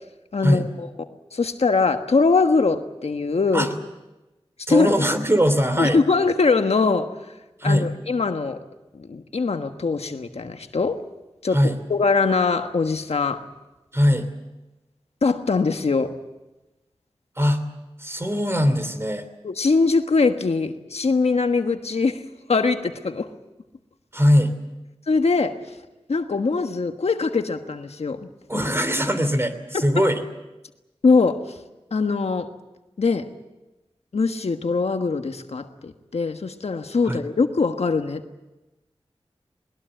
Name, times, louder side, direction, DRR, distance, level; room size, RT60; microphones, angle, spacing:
voice 1, 0.3-3.7 4.7-4.9 5.8-7.1 7.6-8.6 8.9-11.0 11.4-13.5 15.2-16.1 19.4-22.2 22.5-23.3 25.1-25.6 26.1-28.3 29.7-30.1 31.0-31.6 31.9-32.5 33.0-33.3 34.1-38.2, left 4 dB, 80° left, 7 dB, 1.4 m, -22 dB
voice 2, 4.7-6.0 7.6-7.9 11.5-11.8 13.9-14.3 17.4-17.6 18.0-19.3 24.1-24.5 28.5-30.2 37.0-37.2, equal, 25° right, 9 dB, 3.1 m, -20 dB
20.5 x 20.5 x 9.1 m, 1.1 s
wide cardioid pair, 50°, 11 cm